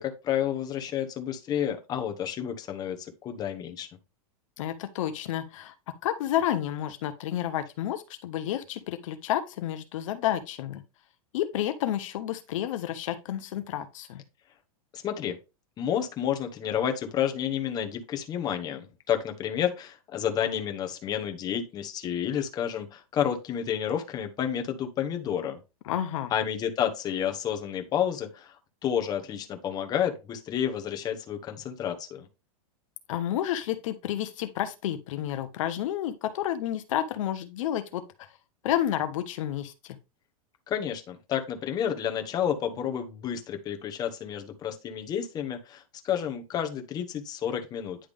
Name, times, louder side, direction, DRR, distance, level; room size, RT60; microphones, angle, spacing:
voice 1, 0.0-3.9 14.9-15.4 15.8-25.6 26.3-28.5 28.8-32.3 40.7-48.0, left 9 dB, 20° left, 1.0 m, -30 dB
voice 2, 4.6-10.8 11.3-14.2 25.9-26.3 33.1-38.3 38.6-40.0, left 11 dB, 60° left, 0.9 m, -30 dB
9.9 x 3.5 x 3.5 m
supercardioid pair, 155°, 18 cm